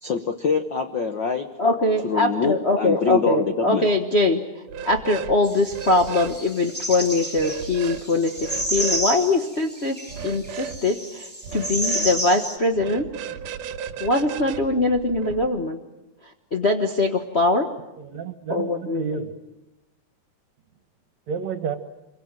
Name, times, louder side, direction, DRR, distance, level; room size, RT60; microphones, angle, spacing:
voice 1, 0.0-1.5 2.0-3.9, left 5 dB, 60° left, 6 dB, 1.1 m, -25 dB
voice 2, 1.6-4.4 4.8-10.0 10.2-13.0 14.0-15.8 16.5-17.7 18.5-19.2, left 2 dB, 90° left, 2 dB, 0.5 m, -22 dB
sound 1, 4.7-5.4 5.7-6.4 7.4-8.0 8.4-9.1 10.1-10.8 11.4-12.2 12.7-15.5, right 7 dB, 80° right, 2.7 m, -35 dB
sound 2, 5.4-12.6, right 1 dB, 5° left, 3.2 m, -30 dB
voice 3, 18.0-19.3 21.3-21.8, right 6 dB, 60° right, 9 dB, 2.7 m, -30 dB
26.5 x 23.5 x 8.9 m, 1.0 s
omnidirectional pair, 3.7 m